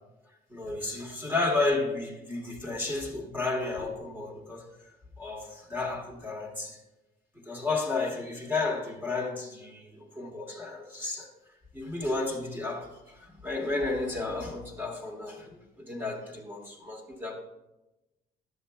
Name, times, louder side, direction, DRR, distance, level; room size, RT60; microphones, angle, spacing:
voice 1, 0.5-6.8 7.3-11.3 11.7-17.4, left 3 dB, 10° right, 1.2 m, -32 dB
11.0 x 7.1 x 2.2 m
cardioid pair, 145°, 16 cm